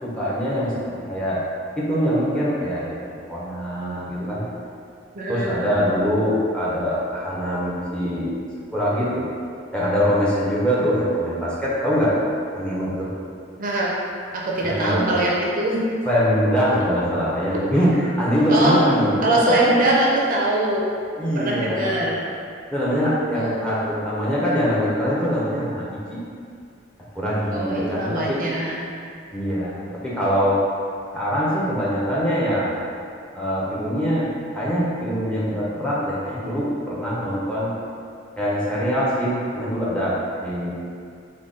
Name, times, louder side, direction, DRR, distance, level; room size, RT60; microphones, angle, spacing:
voice 1, 0.0-1.4 1.8-2.9 3.3-4.5 5.3-8.3 8.7-9.3 9.7-12.2 12.5-13.1 14.6-15.1 16.0-19.7 21.2-22.0 22.7-26.2 27.1-28.4 29.3-30.6 31.1-32.8 33.3-37.7 38.4-40.7, equal, 5° left, -8 dB, 0.7 m, -23 dB
voice 2, 5.1-5.7 13.6-13.9 14.3-15.8 18.5-18.8 19.2-20.8 21.3-22.2 23.3-24.0 27.5-28.9, right 1 dB, 45° right, -4 dB, 0.5 m, -22 dB
3.9 x 2.2 x 3.6 m, 2.4 s
head